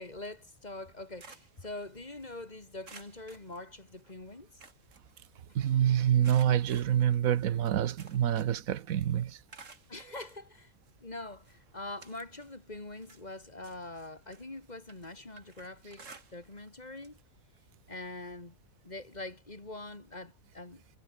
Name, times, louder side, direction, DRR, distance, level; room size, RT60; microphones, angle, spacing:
voice 1, 0.0-4.6 5.5-5.6 9.9-10.7 11.0-17.2 17.9-18.6 18.8-20.8, left 2 dB, 30° left, 2.6 m, -44 dB
sound 1, 0.8-2.4 2.8-4.1 4.4-5.7 6.2-8.7 9.0-10.1 10.8-10.9 11.4-12.6 12.9-16.7 17.0-17.2 17.6-17.7 18.9-19.0, right 4 dB, 65° right, 2.9 m, -55 dB
voice 2, 5.5-9.4, right 10 dB, 85° right, 1.3 m, -27 dB
omnidirectional pair, 1.4 m